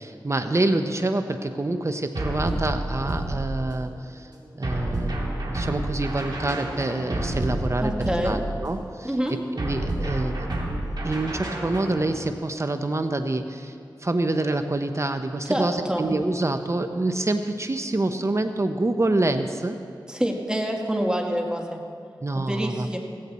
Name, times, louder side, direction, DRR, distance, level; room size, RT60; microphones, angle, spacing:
voice 1, 0.0-4.3 4.6-9.1 9.5-10.5 11.0-19.8 22.2-23.0, right 2 dB, 35° right, 8 dB, 0.7 m, -26 dB
sound 1, 2.2-3.9 4.6-8.8 9.6-12.1, right 1 dB, 60° right, 2.6 m, -29 dB
voice 2, 7.8-8.4 9.0-9.3 15.5-16.1 20.1-21.8 22.4-23.0, equal, 10° right, 1 dB, 1.7 m, -26 dB
16.5 x 15.0 x 4.2 m, 2.3 s
wide cardioid pair, 55°, 8 cm